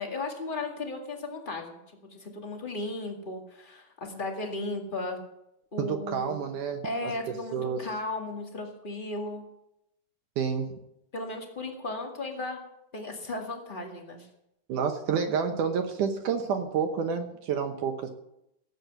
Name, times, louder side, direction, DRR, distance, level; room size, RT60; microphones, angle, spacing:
voice 1, 0.0-1.8 2.1-5.2 5.7-6.4 6.8-9.4 11.1-12.6 12.9-14.3, left 2 dB, 35° left, 2 dB, 0.8 m, -35 dB
voice 2, 5.8-7.1 7.5-7.9 10.4-10.8 14.7-18.1, right 6 dB, 65° right, 5 dB, 2.2 m, -29 dB
17.5 x 8.0 x 8.0 m, 0.83 s
omnidirectional pair, 4.5 m